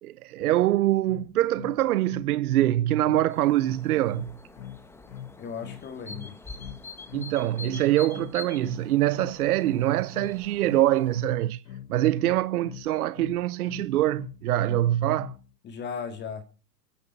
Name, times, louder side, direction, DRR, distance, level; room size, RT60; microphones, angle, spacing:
voice 1, 0.0-4.3 7.1-11.6 11.9-15.3, right 14 dB, 60° right, 0.7 m, -24 dB
sound 1, 1.0-15.5, left 10 dB, 85° left, 1.4 m, -42 dB
sound 2, 3.3-11.2, left 3 dB, 5° left, 1.2 m, -45 dB
voice 2, 5.4-6.4 15.6-16.4, left 6 dB, 20° left, 2.3 m, -36 dB
23.5 x 10.0 x 4.5 m
hypercardioid pair, 140°, 50 cm